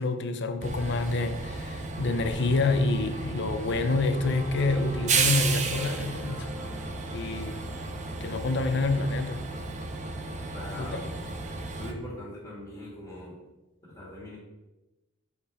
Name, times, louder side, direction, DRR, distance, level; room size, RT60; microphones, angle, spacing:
voice 1, 0.0-6.5 7.1-7.6 8.2-9.4 10.7-11.1, left 3 dB, 65° left, 8 dB, 0.7 m, -27 dB
Train, 0.6-11.9, right 4 dB, 35° right, 0.7 m, -33 dB
sound 1, 3.7-13.0, equal, 5° right, 2.3 m, -48 dB
voice 2, 10.5-11.0 11.7-13.4 13.8-14.4, left 1 dB, 20° left, -5 dB, 2.2 m, -41 dB
6.7 x 5.5 x 4.3 m, 1.1 s
head